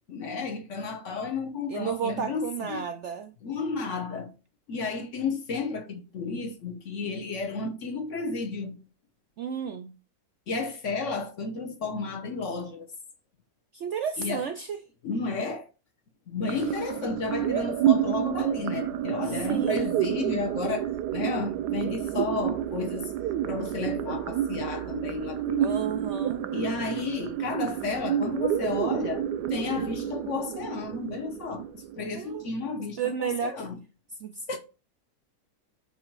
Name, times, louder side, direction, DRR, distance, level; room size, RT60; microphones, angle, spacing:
voice 1, 0.1-2.8 3.4-4.3 4.7-8.8 10.5-12.9 14.2-14.4 15.0-15.7 16.3-23.1 23.4-25.7 26.5-29.2 29.5-33.8 34.5-34.6, left 4 dB, 55° left, 1.2 m, -32 dB
voice 2, 1.7-3.4 9.4-9.9 13.7-14.8 19.3-19.9 25.6-26.5 32.2-32.5 33.0-33.7 34.2-34.6, right 7 dB, 65° right, 0.7 m, -32 dB
sound 1, 16.5-32.5, right 10 dB, 85° right, 1.2 m, -29 dB
8.2 x 3.1 x 4.6 m
omnidirectional pair, 1.7 m